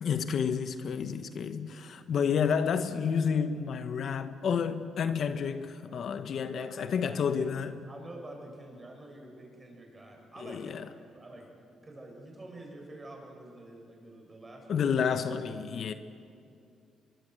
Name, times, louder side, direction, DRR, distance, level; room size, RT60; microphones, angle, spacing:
voice 1, 0.0-7.9 10.4-10.8 14.7-15.9, left 6 dB, 60° left, 1.0 m, -30 dB
voice 2, 6.5-7.2 7.9-10.9 11.1-11.5 11.8-15.2, right 2 dB, 20° right, 7.4 m, -48 dB
24.0 x 23.0 x 7.9 m
cardioid pair, 90°, 0 cm